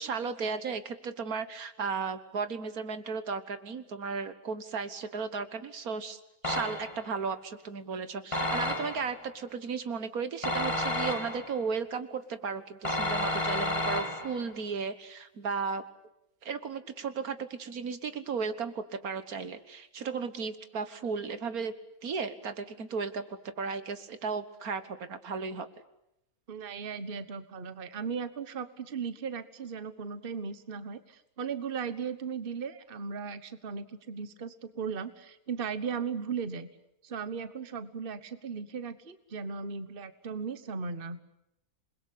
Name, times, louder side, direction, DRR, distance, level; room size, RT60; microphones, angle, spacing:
voice 1, 0.0-15.8 16.4-21.7 22.0-25.7, right 5 dB, 75° right, 11 dB, 1.9 m, -35 dB
sound 1, 6.4-7.1 8.3-9.2 10.4-11.6 12.8-14.5, left 1 dB, 20° left, 2.5 m, -31 dB
voice 2, 26.5-36.7 37.0-41.2, right 6 dB, 40° right, 12 dB, 1.4 m, -37 dB
28.0 x 21.5 x 8.5 m, 0.84 s
omnidirectional pair, 1.6 m